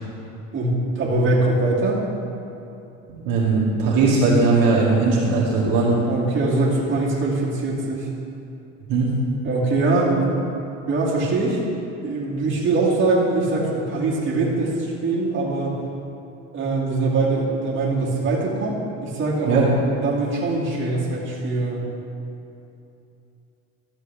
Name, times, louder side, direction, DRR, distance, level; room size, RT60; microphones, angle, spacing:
voice 1, 0.5-2.1 6.1-8.1 9.4-10.4 10.9-11.6 12.0-15.8 16.5-19.6 20.0-21.8, right 2 dB, 30° right, -6 dB, 2.4 m, -22 dB
voice 2, 3.1-5.9 8.9-9.1 19.5-19.7, right 3 dB, 60° right, -6 dB, 2.1 m, -19 dB
13.0 x 7.4 x 3.4 m, 2.8 s
supercardioid pair, 100°, 37 cm